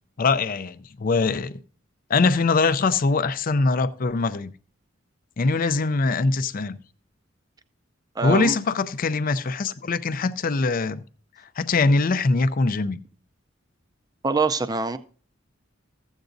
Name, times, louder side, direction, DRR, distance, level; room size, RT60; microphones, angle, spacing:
voice 1, 0.2-1.6 2.1-4.5 5.4-6.8 8.2-11.0 11.6-13.0, left 3 dB, 45° left, 0.5 m, -22 dB
voice 2, 8.2-8.6 14.2-15.0, right 4 dB, 20° right, 0.5 m, -24 dB
14.5 x 8.0 x 2.6 m
head